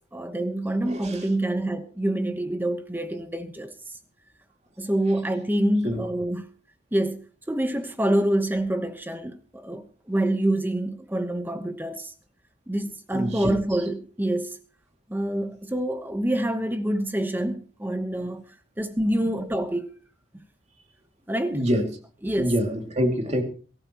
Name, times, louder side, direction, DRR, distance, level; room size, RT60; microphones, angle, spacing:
voice 1, 0.1-3.7 4.8-6.5 6.9-12.1 12.7-14.6 15.1-18.5 18.8-19.9 21.3-21.6 22.2-22.5, right 1 dB, 10° right, 1.1 m, -26 dB
voice 2, 0.8-1.2 5.8-6.0 13.1-13.5 21.5-21.9 22.4-23.4, equal, 35° right, 2.6 m, -25 dB
23.0 x 14.5 x 3.0 m
head